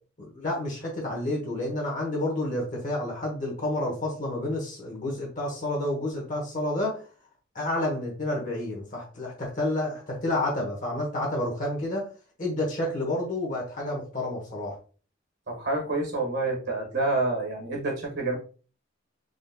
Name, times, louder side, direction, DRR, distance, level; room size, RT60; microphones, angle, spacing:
voice 1, 0.2-7.0 7.5-12.1 12.4-14.8, left 1 dB, 40° left, -2 dB, 1.1 m, -30 dB
voice 2, 15.5-18.3, right 2 dB, 55° right, 0 dB, 1.7 m, -28 dB
4.1 x 3.7 x 2.2 m, 0.38 s
head